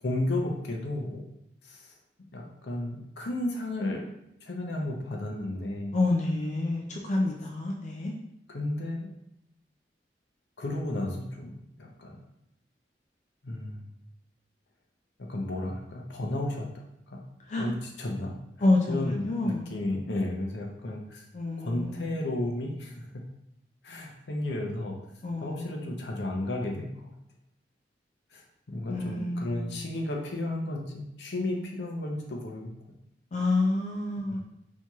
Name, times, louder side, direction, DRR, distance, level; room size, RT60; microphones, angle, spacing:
voice 1, 0.0-1.2 1.6-1.9 2.3-4.1 4.4-6.0 8.5-9.1 10.6-12.2 13.4-13.9 15.2-16.7 17.1-17.2 17.6-18.3 18.9-21.2 21.6-23.0 23.8-24.9 25.4-27.1 28.3-32.7 34.3-34.4, left 1 dB, 75° left, 1 dB, 0.7 m, -33 dB
voice 2, 5.9-8.1 17.5-17.7 18.6-19.7 21.3-22.2 25.2-25.9 28.9-29.8 33.3-34.4, left 2 dB, 40° left, -1 dB, 0.4 m, -28 dB
4.4 x 2.9 x 2.3 m, 0.81 s
head